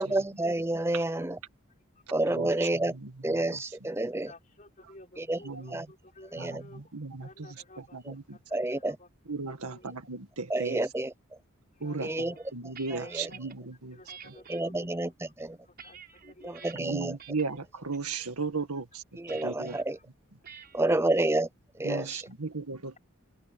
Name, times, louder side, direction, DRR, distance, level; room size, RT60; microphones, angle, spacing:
voice 1, 0.0-1.4 2.1-2.9 3.2-4.3 5.2-5.4 5.7-5.9 6.3-6.6 8.1-8.2 8.5-9.0 10.5-11.1 12.0-12.3 13.1-13.3 14.5-15.6 16.4-17.1 19.3-20.0 20.7-21.5 21.8-22.2, right 2 dB, 10° right, 0.6 m, -29 dB
voice 2, 2.1-3.8 5.4-5.9 6.4-8.4 9.3-10.9 11.8-14.0 14.2-14.3 16.7-19.8 21.8-23.0, right 4 dB, 90° right, 1.8 m, -37 dB
voice 3, 4.2-6.9 7.2-8.0 8.8-9.1 9.6-9.9 11.8-12.4 12.9-13.4 14.0-14.9 15.7-16.7 19.6-19.7 21.0-21.2, left 2 dB, 35° left, 5.3 m, -53 dB
sound 1, 12.4-13.6 14.1-14.6 15.2-16.7 17.2-17.6 17.9-18.3 19.3-19.8 20.4-20.8, right 7 dB, 45° right, 5.7 m, -49 dB
head